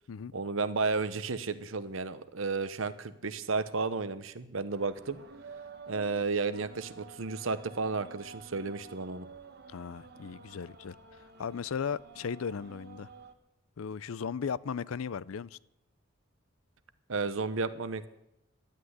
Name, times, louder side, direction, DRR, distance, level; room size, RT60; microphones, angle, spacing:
voice 1, 0.3-5.2 5.9-9.3 17.1-18.1, right 4 dB, 75° right, 0.9 m, -32 dB
sound 1, 4.7-13.3, right 4 dB, 50° right, 1.2 m, -51 dB
voice 2, 9.7-10.9 11.4-13.1 13.8-15.6, left 6 dB, 85° left, 0.5 m, -36 dB
12.0 x 8.8 x 9.6 m
head